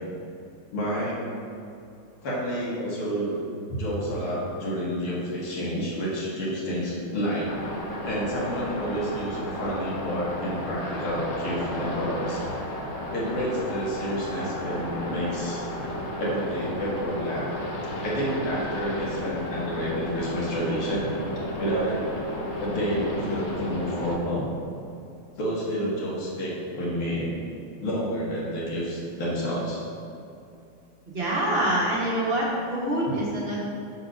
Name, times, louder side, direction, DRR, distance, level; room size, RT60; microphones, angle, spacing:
voice 1, 0.7-1.2 2.2-3.4 3.7-7.5 8.0-12.4 13.1-15.6 16.1-17.5 18.0-21.1 21.6-22.2 22.6-24.5 25.4-27.3 27.8-29.8 33.1-33.2, equal, 80° left, -6 dB, 2.4 m, -29 dB
sound 1, 7.5-24.1, left 1 dB, 55° left, 0.8 m, -33 dB
voice 2, 31.1-33.6, right 1 dB, 35° right, -6 dB, 1.3 m, -25 dB
6.6 x 4.2 x 6.2 m, 2.6 s
omnidirectional pair, 2.3 m